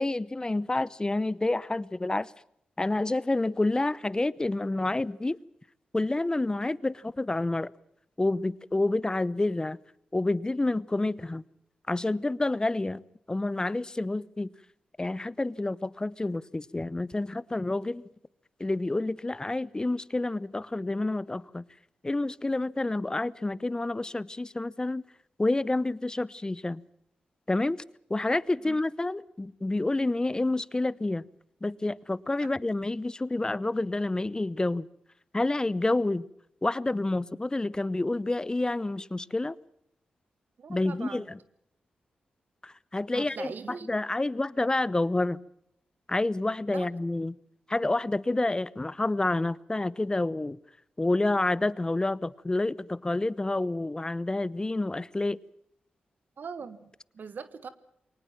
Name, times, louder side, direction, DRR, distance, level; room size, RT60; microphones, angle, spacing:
voice 1, 0.0-2.3 2.8-5.4 5.9-7.7 8.2-9.8 10.1-11.4 11.9-13.0 13.3-14.5 15.0-18.0 18.6-21.6 22.0-25.0 25.4-26.8 27.5-27.8 28.1-31.3 31.6-34.9 35.3-36.3 36.6-39.6 40.7-41.4 42.6-45.4 46.1-47.3 47.7-50.6 51.0-55.4, left 2 dB, 25° left, 0.9 m, -28 dB
voice 2, 40.6-41.3 43.1-43.9 46.7-46.9 56.4-57.7, right 5 dB, 70° right, 1.4 m, -41 dB
23.0 x 19.0 x 7.5 m
cardioid pair, 55°, 3 cm